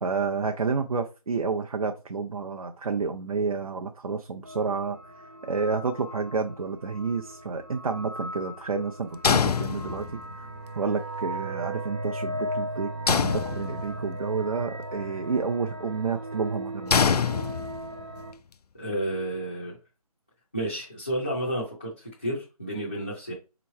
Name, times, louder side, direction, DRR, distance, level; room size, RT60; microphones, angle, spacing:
voice 1, 0.0-5.0 5.5-10.1 10.4-10.5 10.8-16.9, right 4 dB, 65° right, 4 dB, 0.6 m, -30 dB
sound 1, 4.4-18.3, right 1 dB, 35° right, 0.8 m, -37 dB
sound 2, 9.2-10.3 13.1-14.1 16.9-18.0, left 6 dB, 90° left, 0.4 m, -25 dB
voice 2, 18.8-19.8 20.5-23.3, right 1 dB, 15° left, -7 dB, 0.4 m, -31 dB
3.5 x 3.0 x 4.4 m, 0.31 s
figure-of-eight pair, 170°, 19 cm